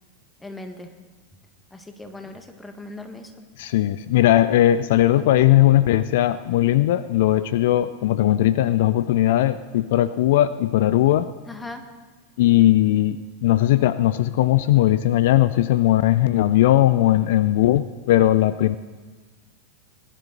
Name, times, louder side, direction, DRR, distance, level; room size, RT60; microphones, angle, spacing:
voice 1, 0.4-0.9 1.7-3.5 5.1-5.3 11.5-11.8, left 2 dB, 10° left, 7 dB, 1.5 m, -39 dB
voice 2, 3.6-11.3 12.4-18.8, left 14 dB, 65° left, 15 dB, 0.4 m, -18 dB
20.0 x 10.5 x 4.0 m, 1.4 s
figure-of-eight pair, 90°, 0 cm